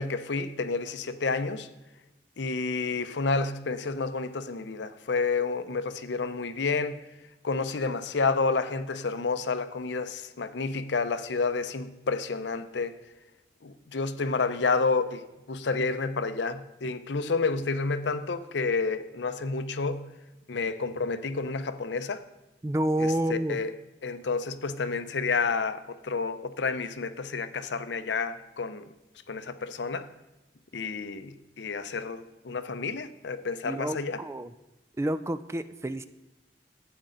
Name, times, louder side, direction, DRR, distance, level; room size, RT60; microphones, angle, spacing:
voice 1, 0.0-1.7 2.4-7.0 7.4-13.0 13.6-20.1 20.5-22.2 23.0-23.7 24.0-28.9 29.3-30.1 30.7-34.2, left 4 dB, 80° left, 0.6 m, -30 dB
voice 2, 22.6-23.6 33.6-34.5 35.0-36.0, right 1 dB, 15° right, 0.3 m, -29 dB
12.5 x 8.6 x 3.9 m
head